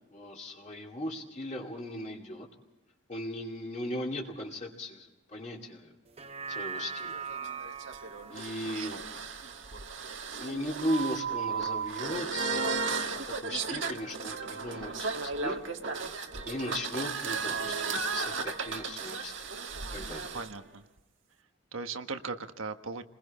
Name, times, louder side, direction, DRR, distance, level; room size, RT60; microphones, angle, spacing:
voice 1, 0.1-2.5 3.1-5.9 6.5-7.2 8.3-9.1 10.4-15.6 16.5-19.5 19.9-20.3, left 1 dB, 35° left, -2 dB, 2.3 m, -37 dB
sound 1, 6.1-10.6 11.0-11.1, right 6 dB, 30° right, 0.8 m, -42 dB
sound 2, 6.8-20.5, right 5 dB, 65° right, 1.5 m, -35 dB
voice 2, 8.7-9.0 20.3-20.8 21.7-23.0, right 4 dB, 80° right, 8 dB, 1.3 m, -38 dB
29.5 x 21.0 x 4.3 m, 1.1 s
head